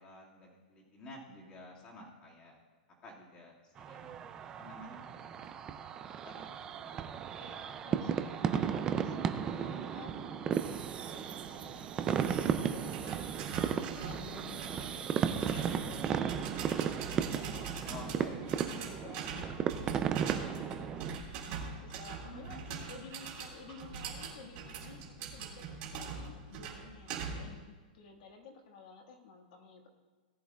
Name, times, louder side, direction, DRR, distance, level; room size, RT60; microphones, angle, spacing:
voice 1, 0.0-2.6 3.0-4.2 4.6-5.7 6.2-7.0 14.7-15.0 17.8-18.4 22.2-22.9, left 1 dB, 20° left, -3 dB, 2.0 m, -51 dB
sound 1, 3.8-21.2, right 8 dB, 15° right, 0.3 m, -35 dB
voice 2, 7.4-15.1 15.5-16.9 17.3-21.3 21.8-29.9, left 4 dB, 45° left, 3 dB, 1.6 m, -53 dB
sound 2, 10.5-16.1, right 9 dB, 80° right, 0.7 m, -50 dB
sound 3, 12.2-27.6, right 5 dB, 30° right, 2.0 m, -43 dB
18.5 x 10.5 x 2.3 m, 1.4 s
supercardioid pair, 175°, 5 cm